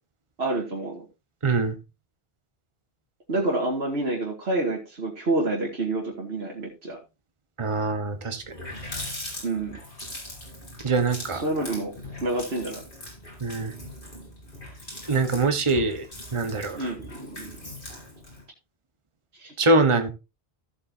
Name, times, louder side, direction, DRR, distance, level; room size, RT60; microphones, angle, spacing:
voice 1, 0.4-1.0 3.3-7.0 9.4-9.8 11.3-12.8 16.7-17.7 19.4-19.5, right 2 dB, 85° right, 2.4 m, -28 dB
voice 2, 1.4-1.8 7.6-8.4 10.8-11.4 13.4-13.7 15.1-16.1 16.3-16.8 19.6-20.1, right 3 dB, 30° right, 1.2 m, -23 dB
Water tap faucet, 8.0-8.1 8.3-18.4, left 1 dB, 60° left, 4.3 m, -40 dB
15.5 x 7.6 x 2.7 m
omnidirectional pair, 1.0 m